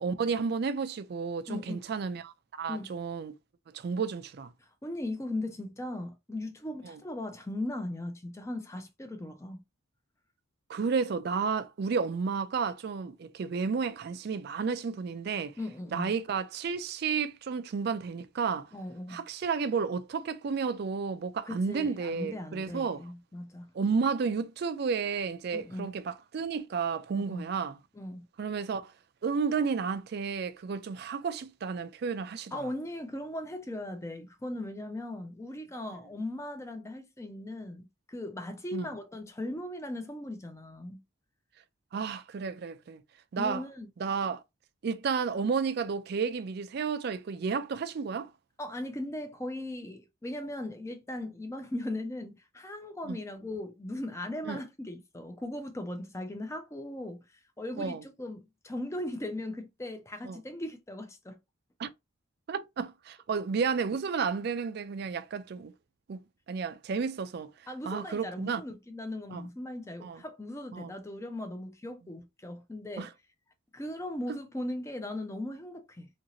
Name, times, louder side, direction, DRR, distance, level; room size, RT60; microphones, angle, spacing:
voice 1, 0.0-3.3 3.7-4.5 6.8-7.0 10.7-15.5 15.9-18.7 19.1-23.0 23.7-27.8 28.4-28.9 29.2-32.6 38.7-38.9 41.9-43.0 43.3-43.6 44.0-44.4 44.8-48.3 53.1-53.2 54.5-54.6 57.8-58.0 60.2-60.4 61.8-61.9 62.5-65.7 66.1-67.5 67.9-68.6 69.3-69.5 70.0-70.2 70.7-70.9 73.0-73.1, right 5 dB, 50° right, 0.3 m, -32 dB
voice 2, 1.5-1.8 2.7-2.9 4.6-9.6 15.6-16.1 18.7-19.2 21.5-23.7 25.5-25.9 27.1-27.5 27.9-28.3 32.5-41.0 43.4-43.9 48.6-61.4 67.7-73.1 73.7-76.1, left 1 dB, 15° left, 0.4 m, -38 dB
2.8 x 2.7 x 2.8 m
head